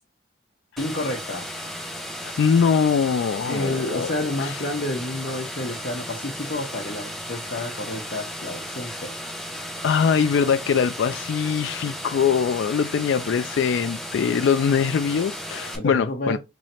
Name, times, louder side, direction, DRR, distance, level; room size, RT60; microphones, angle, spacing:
voice 1, 0.8-1.5 3.5-9.1 15.7-16.4, left 1 dB, 50° left, 0.8 m, -30 dB
sound 1, 0.8-15.8, equal, ahead, 0.6 m, -35 dB
voice 2, 2.2-4.6 9.8-16.4, left 6 dB, 70° left, 0.3 m, -22 dB
3.1 x 2.7 x 4.2 m
head